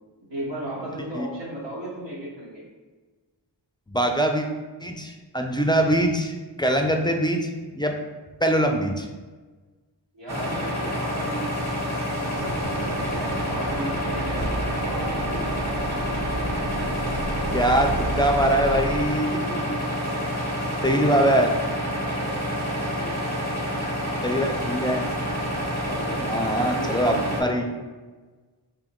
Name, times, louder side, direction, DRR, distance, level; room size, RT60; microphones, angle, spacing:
voice 1, 0.3-2.6 10.1-16.0 20.8-21.4 22.0-23.6 25.8-27.6, right 1 dB, 80° right, -7 dB, 1.1 m, -37 dB
voice 2, 3.9-4.5 4.8-8.0 8.4-9.1 17.5-19.8 20.8-21.5 24.2-25.1 26.2-27.7, right 1 dB, 10° left, 3 dB, 0.3 m, -23 dB
sound 1, 10.3-27.4, equal, 35° right, 1.0 m, -28 dB
sound 2, 12.3-19.0, right 2 dB, 60° right, 0.6 m, -31 dB
3.8 x 2.7 x 3.5 m, 1.3 s
wide cardioid pair, 45°, 43 cm